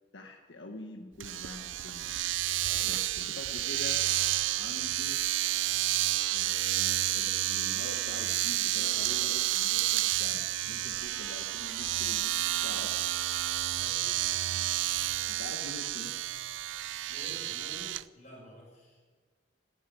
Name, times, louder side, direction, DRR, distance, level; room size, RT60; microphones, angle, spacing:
voice 1, 0.1-2.1 2.8-4.1 4.5-5.2 6.3-12.9 15.3-16.2, left 1 dB, 80° left, 3 dB, 1.5 m, -45 dB
Domestic sounds home sounds, 1.2-18.0, right 15 dB, 85° right, 0.4 m, -30 dB
voice 2, 2.6-3.3 13.7-14.1 17.1-19.2, equal, 35° left, -3 dB, 6.1 m, -50 dB
16.5 x 10.0 x 8.7 m, 1.5 s
head